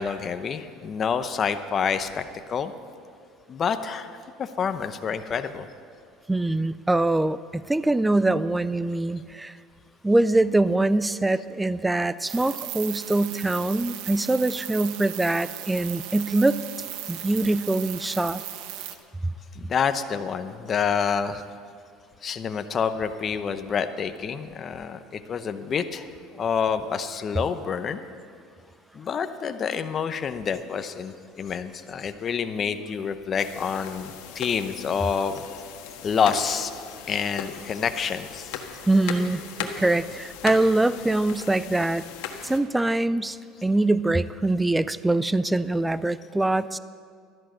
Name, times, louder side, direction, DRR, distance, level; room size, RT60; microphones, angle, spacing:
voice 1, 0.0-2.2 2.5-2.7 3.5-5.7 19.5-21.5 22.2-28.0 28.9-35.4 36.0-36.7 37.1-38.6, left 6 dB, 30° left, 9 dB, 0.8 m, -28 dB
voice 2, 6.3-9.6 10.0-16.6 17.1-18.4 38.9-42.1 42.4-46.8, right 2 dB, 5° right, 16 dB, 0.4 m, -23 dB
sound 1, 12.3-18.9, right 12 dB, 70° right, 1.0 m, -37 dB
sound 2, 33.4-42.6, left 8 dB, 80° left, 1.5 m, -38 dB
12.5 x 11.0 x 7.8 m, 2.2 s
cardioid pair, 135°, 0 cm